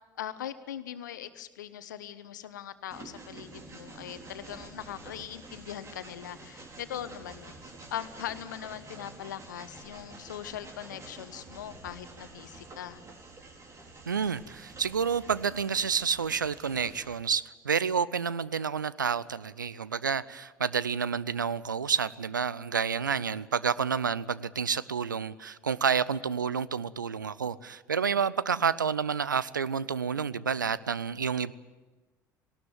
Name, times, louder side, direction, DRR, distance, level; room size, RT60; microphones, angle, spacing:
voice 1, 0.2-13.0, left 10 dB, 70° left, 13 dB, 1.2 m, -41 dB
Train, 2.9-17.2, right 3 dB, 30° right, 4.0 m, -48 dB
voice 2, 14.1-31.5, right 6 dB, 80° right, 19 dB, 0.6 m, -29 dB
19.0 x 18.5 x 9.1 m, 1.2 s
figure-of-eight pair, 65°, 10 cm